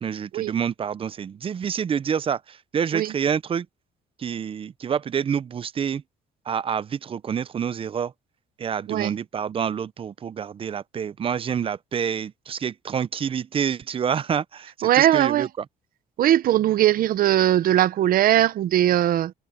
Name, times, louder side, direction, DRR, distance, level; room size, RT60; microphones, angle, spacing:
voice 1, 0.0-3.7 4.2-6.0 6.5-8.1 8.6-15.6, right 7 dB, 35° right, 0.5 m, -27 dB
voice 2, 14.8-15.5 16.2-19.3, right 12 dB, 60° right, 0.8 m, -20 dB
cardioid pair, 110°, 17 cm